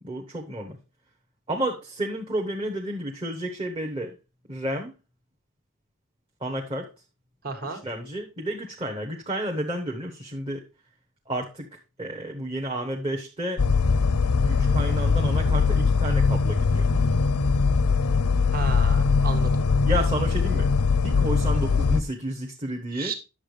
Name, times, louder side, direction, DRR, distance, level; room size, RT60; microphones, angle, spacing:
voice 1, 0.0-0.8 1.5-4.2 4.5-4.9 6.4-6.9 7.6-10.7 11.3-13.6 14.4-16.9 19.8-23.1, right 1 dB, 25° right, 0 dB, 1.1 m, -31 dB
voice 2, 7.4-7.8 18.5-19.6 22.9-23.1, right 4 dB, 40° right, 4 dB, 1.8 m, -33 dB
sound 1, 13.6-22.0, left 4 dB, 85° left, 0.6 m, -21 dB
9.9 x 7.1 x 3.3 m, 0.28 s
head